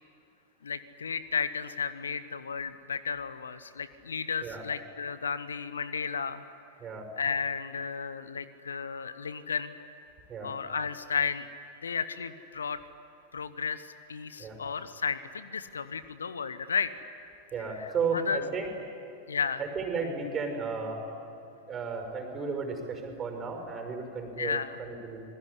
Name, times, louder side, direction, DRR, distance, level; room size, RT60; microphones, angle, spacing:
voice 1, 0.6-6.4 7.2-9.7 10.4-11.5 11.8-12.8 13.3-16.9 17.7-18.4 19.3-19.6 24.4-24.8, left 6 dB, 70° left, 14 dB, 1.0 m, -33 dB
voice 2, 17.5-18.7 19.6-21.0 21.5-25.2, right 4 dB, 25° right, 5 dB, 5.9 m, -34 dB
27.5 x 21.0 x 9.9 m, 2.7 s
figure-of-eight pair, 90°, 0 cm